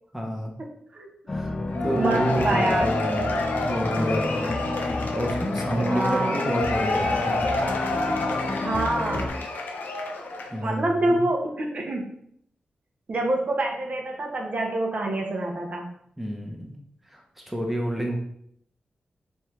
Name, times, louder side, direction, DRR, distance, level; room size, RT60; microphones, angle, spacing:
voice 1, 0.1-0.5 1.3-3.3 3.6-4.6 4.9-7.4 10.5-11.2 16.2-16.8 17.1-18.2, equal, 5° right, 0 dB, 0.7 m, -29 dB
sound 1, 1.3-9.3, left 2 dB, 30° left, 0.5 m, -31 dB
Cheering / Applause / Crowd, 1.7-10.6, left 2 dB, 90° left, 0.5 m, -28 dB
voice 2, 1.9-2.9 5.7-6.4 8.6-9.4 10.6-12.1 13.1-15.9, right 2 dB, 50° right, 1 dB, 0.6 m, -26 dB
3.5 x 3.1 x 3.2 m, 0.70 s
wide cardioid pair, 95°, 3 cm